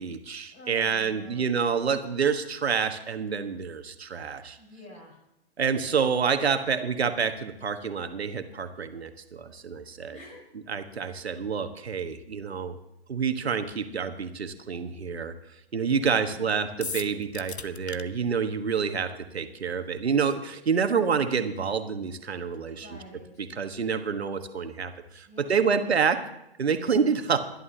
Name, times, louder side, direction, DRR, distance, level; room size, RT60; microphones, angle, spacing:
voice 1, 0.0-4.6 5.6-10.2 10.7-12.8 13.1-15.3 15.7-22.9 23.4-26.2 26.6-27.4, right 6 dB, 75° right, 8 dB, 1.4 m, -28 dB
voice 2, 0.5-1.4 4.6-5.2 10.1-10.4 16.0-16.4 22.7-23.5 25.3-25.8, left 1 dB, 25° left, 0 dB, 4.4 m, -48 dB
sound 1, 16.8-18.0, left 5 dB, 85° left, 0.9 m, -36 dB
23.0 x 11.0 x 2.8 m, 0.85 s
figure-of-eight pair, 120°, 32 cm